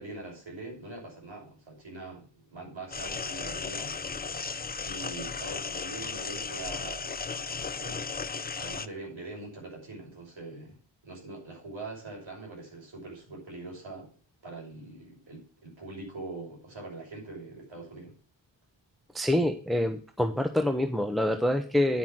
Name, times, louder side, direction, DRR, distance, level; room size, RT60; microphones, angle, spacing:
voice 1, 0.0-4.2 4.8-7.1 7.8-8.1 8.5-10.8 11.0-14.1 14.4-18.1, right 2 dB, 75° right, -1 dB, 5.8 m, -43 dB
sound 1, 2.9-8.9, left 5 dB, 20° left, 0.4 m, -35 dB
voice 2, 19.1-22.0, left 1 dB, ahead, 6 dB, 0.9 m, -26 dB
9.5 x 5.8 x 7.5 m, 0.38 s
wide cardioid pair, 85°, 46 cm